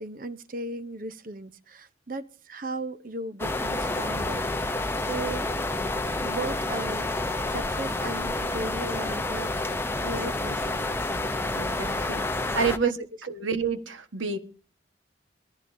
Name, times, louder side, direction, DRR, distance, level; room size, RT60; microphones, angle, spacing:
voice 1, 0.0-5.5 6.2-10.8 12.5-12.9, right 2 dB, 45° right, 0.8 m, -37 dB
sound 1, 3.4-12.8, left 2 dB, 10° left, 0.7 m, -29 dB
voice 2, 11.6-12.3 12.5-13.0 13.2-14.4, right 5 dB, 80° right, 1.5 m, -28 dB
22.5 x 14.5 x 2.7 m
head